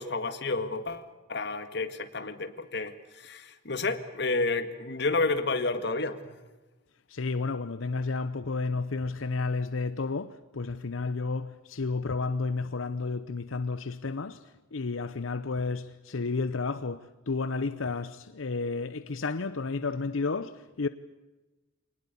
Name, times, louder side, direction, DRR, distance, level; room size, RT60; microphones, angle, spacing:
voice 1, 0.0-6.3, left 3 dB, 60° left, 1.8 m, -30 dB
voice 2, 7.1-20.9, left 3 dB, 90° left, 0.8 m, -32 dB
24.5 x 19.5 x 8.3 m
head